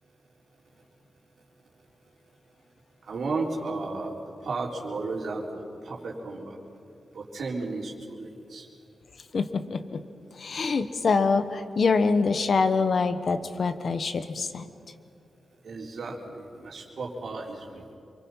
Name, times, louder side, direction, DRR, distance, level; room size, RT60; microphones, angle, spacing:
voice 1, 3.1-4.1 4.4-6.6 7.1-8.7 15.6-17.9, right 3 dB, 60° right, -2 dB, 3.9 m, -34 dB
voice 2, 9.3-10.0 10.4-14.6, left 4 dB, 50° left, 10 dB, 1.2 m, -25 dB
28.0 x 24.5 x 5.7 m, 2.5 s
wide cardioid pair, 145°, 0 cm